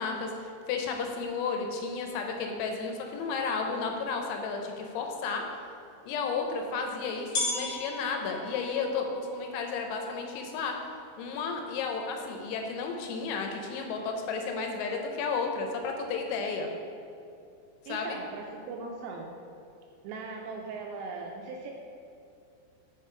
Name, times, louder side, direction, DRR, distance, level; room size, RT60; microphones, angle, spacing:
voice 1, 0.0-5.4 6.1-10.8 11.2-16.7 17.9-18.2, left 4 dB, 85° left, 3 dB, 3.0 m, -33 dB
sound 1, 6.1-6.2 7.3-12.9, left 2 dB, 60° left, 2.0 m, -38 dB
voice 2, 17.9-19.3 20.0-21.7, right 4 dB, 85° right, 0 dB, 2.6 m, -39 dB
6.6 x 4.9 x 4.3 m, 2.5 s
omnidirectional pair, 5.4 m